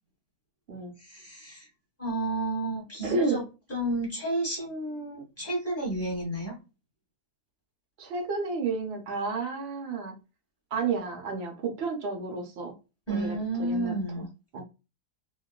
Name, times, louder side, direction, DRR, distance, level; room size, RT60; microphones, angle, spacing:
voice 1, 1.0-1.7 2.0-3.4 3.7-6.6 13.1-14.3, right 1 dB, 10° left, 0.9 m, -31 dB
voice 2, 3.0-3.4 8.0-10.2 10.7-12.7 13.1-14.2 14.5-14.6, right 4 dB, 75° right, 0.5 m, -31 dB
3.0 x 2.3 x 2.2 m
omnidirectional pair, 1.8 m